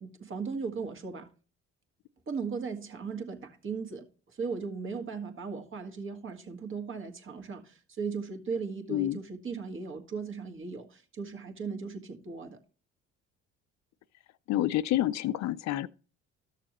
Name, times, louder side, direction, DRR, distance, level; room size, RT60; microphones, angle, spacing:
voice 1, 0.0-1.3 2.3-12.6, right 5 dB, 45° right, 1.6 m, -37 dB
voice 2, 14.5-15.9, left 13 dB, 65° left, 0.5 m, -28 dB
12.5 x 6.6 x 3.0 m
supercardioid pair, 75°, 30 cm